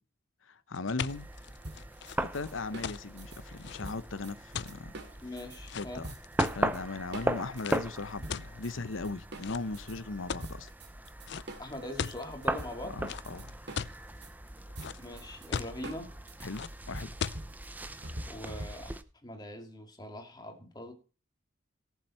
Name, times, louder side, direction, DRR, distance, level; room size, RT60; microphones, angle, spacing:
voice 1, 0.7-1.3 2.2-4.9 5.7-6.0 6.5-10.7 12.9-13.5 16.4-17.1, left 3 dB, 75° left, 0.8 m, -38 dB
sound 1, 0.7-6.9 7.5-7.8 8.3-9.0 9.4-9.8 10.3-10.7 11.3-11.4 11.7-12.2 13.1-14.0 14.5-15.1 15.5-15.9 16.6-16.7 17.2-17.4, left 7 dB, 55° left, 0.5 m, -38 dB
sound 2, 1.1-19.0, right 1 dB, 10° right, 0.6 m, -39 dB
sound 3, 1.6-5.6 6.0-6.8 7.1-10.0 10.4-19.1, right 1 dB, 55° right, 2.4 m, -45 dB
voice 2, 5.2-6.1 11.6-13.0 15.0-16.1 18.3-20.9, left 1 dB, 20° left, 2.5 m, -42 dB
17.5 x 7.3 x 4.4 m
head